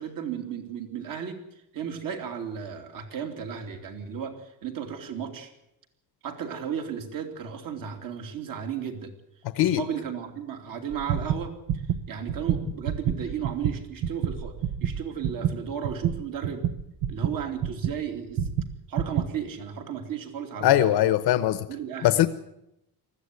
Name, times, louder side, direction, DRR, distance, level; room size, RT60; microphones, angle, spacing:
voice 1, 0.0-1.4 1.7-5.5 6.2-9.1 9.6-11.8 12.1-14.5 14.8-16.7 17.1-18.5 18.9-21.0 21.7-22.3, right 7 dB, 55° right, 5 dB, 3.2 m, -34 dB
sound 1, 10.9-18.0 18.4-19.3, right 9 dB, 75° right, 1.2 m, -28 dB
voice 2, 20.6-21.7 22.0-22.3, left 13 dB, 70° left, 13 dB, 1.0 m, -21 dB
20.0 x 14.5 x 9.6 m, 0.84 s
cardioid pair, 160°, 39 cm